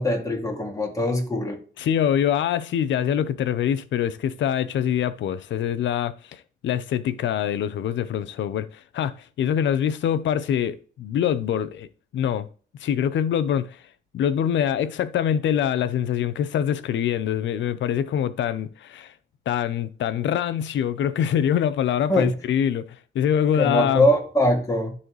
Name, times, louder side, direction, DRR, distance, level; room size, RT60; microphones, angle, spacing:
voice 1, 0.0-1.6 22.1-22.3 23.6-24.9, left 1 dB, 15° left, 2.6 m, -22 dB
voice 2, 1.8-11.9 12.1-12.5 12.8-13.8 14.1-19.1 19.5-24.0, left 9 dB, 70° left, 0.8 m, -24 dB
12.0 x 4.2 x 3.2 m
cardioid pair, 90°, 20 cm